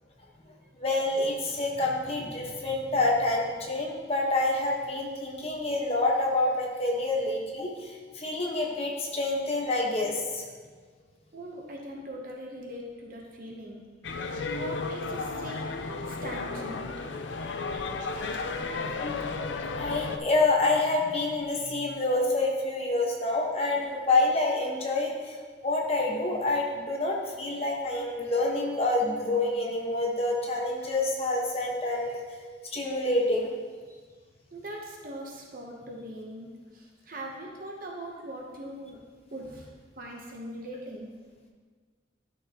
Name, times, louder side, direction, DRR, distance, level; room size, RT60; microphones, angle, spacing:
voice 1, 0.8-10.4 18.0-18.1 18.9-19.2 19.7-25.4 25.6-32.2 32.7-33.5, left 2 dB, 35° left, -2 dB, 1.3 m, -27 dB
voice 2, 11.3-13.8 14.5-17.1 17.4-18.6 33.9-34.0 34.5-39.0 39.3-39.7 40.0-41.1, right 1 dB, 50° right, -1 dB, 0.9 m, -41 dB
sound 1, 14.0-20.2, left 3 dB, 80° left, 0.5 m, -33 dB
11.5 x 6.4 x 2.9 m, 1.5 s
head